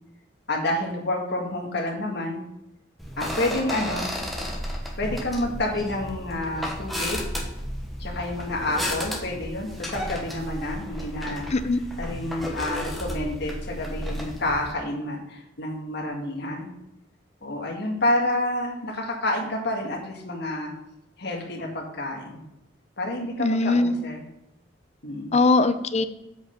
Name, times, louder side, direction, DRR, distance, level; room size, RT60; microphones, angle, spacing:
voice 1, 0.5-2.4 3.2-4.1 5.0-7.2 8.0-11.5 12.0-16.7 17.4-20.7 21.2-22.4 23.0-24.3 25.0-25.4, left 1 dB, 60° left, 0 dB, 1.9 m, -29 dB
sound 1, 3.0-14.7, equal, ahead, 1.2 m, -33 dB
voice 2, 23.4-23.9 25.3-26.1, left 3 dB, 35° left, 11 dB, 0.6 m, -21 dB
7.8 x 5.4 x 5.9 m, 0.87 s
head